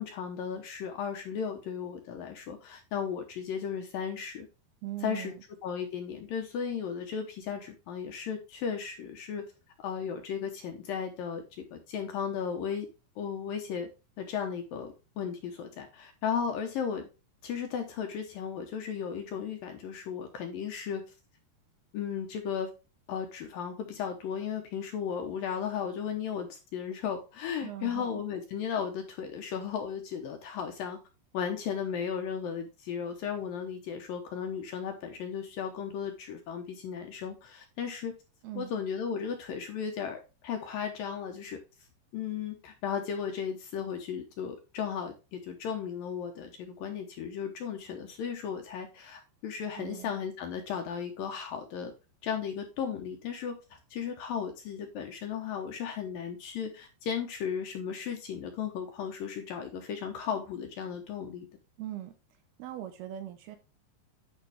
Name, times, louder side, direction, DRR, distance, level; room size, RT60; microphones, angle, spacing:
voice 1, 0.0-4.5 5.0-5.3 5.6-9.4 9.8-11.4 11.7-12.9 13.2-13.9 14.2-17.1 17.4-21.0 21.9-22.7 23.1-31.0 31.3-38.1 38.6-41.6 42.1-51.9 52.2-53.6 53.9-61.5, left 7 dB, 70° left, 4 dB, 2.4 m, -35 dB
voice 2, 4.8-5.4 27.6-28.2 38.4-38.7 49.8-50.1 61.8-62.1 62.6-63.6, right 13 dB, 75° right, 9 dB, 2.6 m, -40 dB
11.0 x 5.3 x 3.5 m, 0.29 s
omnidirectional pair, 5.0 m